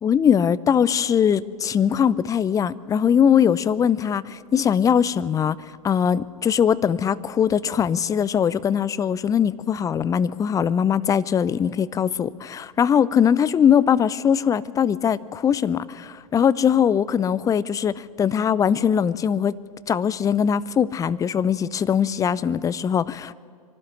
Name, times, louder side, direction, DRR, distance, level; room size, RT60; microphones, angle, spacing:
voice 1, 0.0-5.6 5.8-19.5 19.9-23.3, left 8 dB, 15° left, 18 dB, 0.5 m, -21 dB
24.0 x 12.5 x 9.9 m, 2.2 s
figure-of-eight pair, 95°, 20 cm